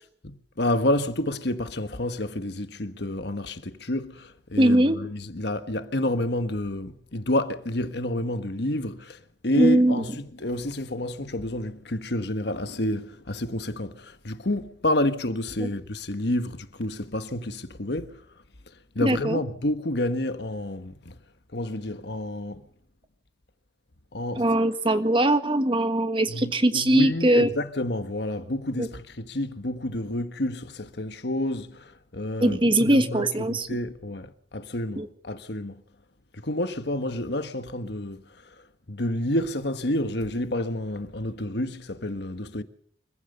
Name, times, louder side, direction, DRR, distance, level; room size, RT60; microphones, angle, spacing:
voice 1, 0.2-18.2 18.9-21.1 21.5-22.6 24.1-24.5 26.3-35.8 36.3-38.3 38.9-42.6, left 1 dB, 60° left, 1.4 m, -29 dB
voice 2, 4.6-5.0 9.6-10.0 15.6-15.7 19.0-19.4 24.4-27.5 28.8-28.9 32.4-33.7 35.0-35.1, right 1 dB, 25° right, 1.5 m, -21 dB
25.5 x 15.5 x 6.8 m
head